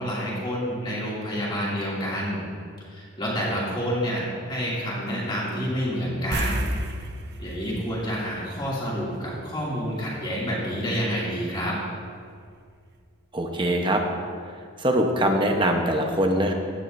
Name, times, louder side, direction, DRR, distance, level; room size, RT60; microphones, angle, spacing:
voice 1, 0.0-2.4 2.9-6.6 7.4-11.8, equal, 20° left, -6 dB, 2.5 m, -28 dB
sound 1, 6.3-9.1 9.4-9.6 12.5-12.6 12.9-13.0, right 1 dB, 50° right, 0.7 m, -31 dB
voice 2, 13.3-14.0 14.8-16.5, right 1 dB, 20° right, 3 dB, 0.9 m, -22 dB
16.0 x 9.9 x 2.6 m, 2.2 s
head